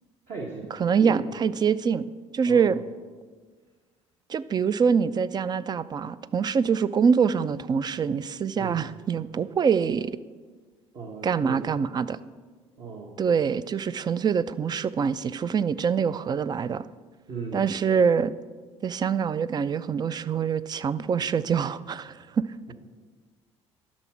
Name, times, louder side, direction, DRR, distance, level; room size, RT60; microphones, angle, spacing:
voice 1, 0.3-0.7 1.0-1.2 2.5-2.7 8.6-8.8 10.9-11.7 12.8-13.2 17.3-17.7, right 4 dB, 45° right, -1 dB, 1.5 m, -36 dB
voice 2, 0.8-2.1 2.3-2.8 4.3-10.2 11.2-12.2 13.2-16.8 17.5-18.3 18.8-22.7, right 6 dB, 25° right, 16 dB, 0.4 m, -25 dB
10.5 x 6.3 x 5.9 m, 1.5 s
figure-of-eight pair, 55°, 16 cm